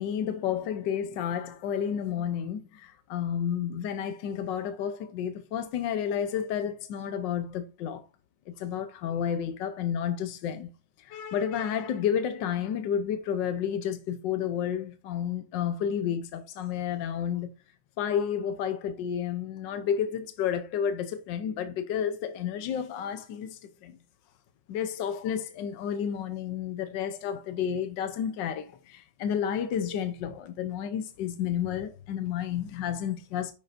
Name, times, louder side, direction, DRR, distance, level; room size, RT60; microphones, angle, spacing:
voice 1, 0.0-8.0 8.5-10.7 11.0-17.5 18.0-24.0 24.7-33.5, left 8 dB, 75° left, 1.5 m, -31 dB
9.6 x 6.8 x 2.6 m
omnidirectional pair, 2.0 m